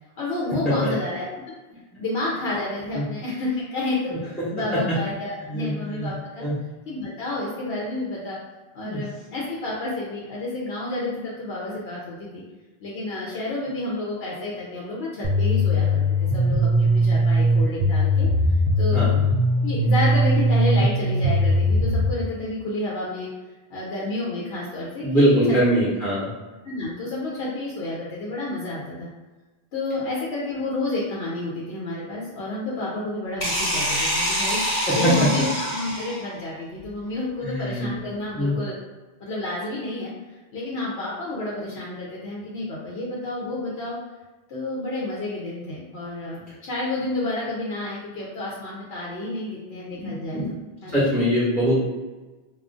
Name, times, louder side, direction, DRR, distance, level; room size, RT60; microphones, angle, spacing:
voice 1, 0.2-1.3 2.0-6.5 6.9-8.4 8.7-12.4 12.8-18.3 18.8-19.1 19.6-23.3 23.7-25.6 26.6-29.1 29.7-34.6 35.0-38.8 39.2-40.1 40.5-44.0 44.5-50.4 50.8-51.0, left 2 dB, 80° left, -5 dB, 0.9 m, -30 dB
voice 2, 4.1-5.0 5.4-6.1 6.4-6.5 8.8-9.0 18.9-19.2 25.0-26.3 34.8-35.3 37.4-37.9 38.4-38.6 46.5-46.6 49.9-50.5 50.9-51.8, equal, ahead, -9 dB, 0.7 m, -23 dB
sound 1, 15.2-22.1, equal, 55° right, 0.4 m, -20 dB
sound 2, 33.4-36.3, equal, 55° left, 1.1 m, -25 dB
2.4 x 2.4 x 3.7 m, 1.2 s
omnidirectional pair, 1.0 m